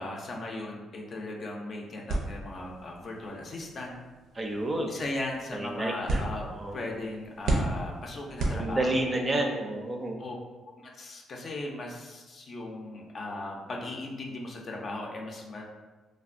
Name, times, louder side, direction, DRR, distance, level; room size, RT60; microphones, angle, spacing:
voice 1, 0.0-4.0 4.9-6.5 6.7-9.2 10.2-10.3 10.6-15.6, left 2 dB, 50° left, 0 dB, 0.5 m, -37 dB
sound 1, 2.1-9.2, right 2 dB, 80° right, 0.5 m, -35 dB
voice 2, 4.3-5.0 5.5-6.8 8.5-10.2, right 1 dB, 25° right, 2 dB, 0.4 m, -30 dB
3.2 x 2.1 x 2.5 m, 1.2 s
cardioid pair, 90°, 0 cm